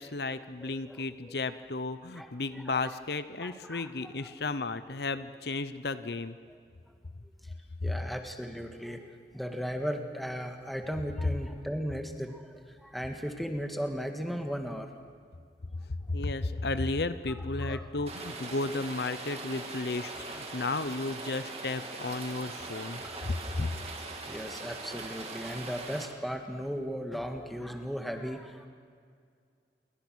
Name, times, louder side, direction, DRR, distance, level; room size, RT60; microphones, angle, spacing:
voice 1, 0.0-6.4 7.8-7.9 16.1-23.7, left 3 dB, 70° left, 12 dB, 0.8 m, -33 dB
voice 2, 0.6-1.3 2.1-3.0 3.4-3.9 4.2-4.3 7.8-9.1 9.3-14.9 17.6-17.9 22.7-22.8 23.1-23.3 24.3-28.7, equal, ahead, 4 dB, 1.7 m, -37 dB
Rain, 18.1-26.1, right 3 dB, 35° right, 2.6 m, -41 dB
28.5 x 22.5 x 6.3 m, 2.2 s
head